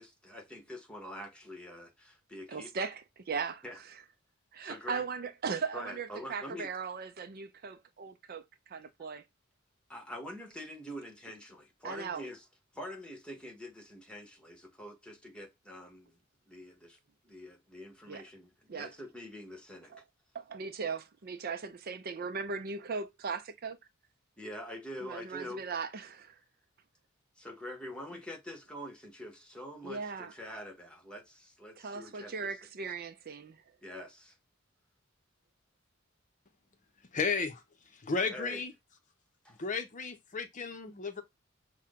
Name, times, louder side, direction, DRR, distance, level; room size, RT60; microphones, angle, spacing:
voice 1, 0.0-2.9 3.6-3.8 4.6-5.0 5.7-6.7 9.9-12.4 12.7-16.2 16.5-17.0 17.2-20.0 24.4-25.6 27.4-32.6 33.8-34.4 38.3-38.6 39.4-39.6, equal, 5° left, 1.2 m, -45 dB
voice 2, 2.5-3.6 4.5-9.2 11.8-12.2 18.1-18.2 18.7-18.9 19.9-20.0 20.3-23.8 25.0-26.4 29.8-30.3 31.8-33.6, right 5 dB, 50° right, 0.5 m, -38 dB
voice 3, 37.1-37.6 37.9-38.7 39.6-41.2, left 4 dB, 40° left, 0.7 m, -33 dB
6.0 x 2.2 x 3.6 m
head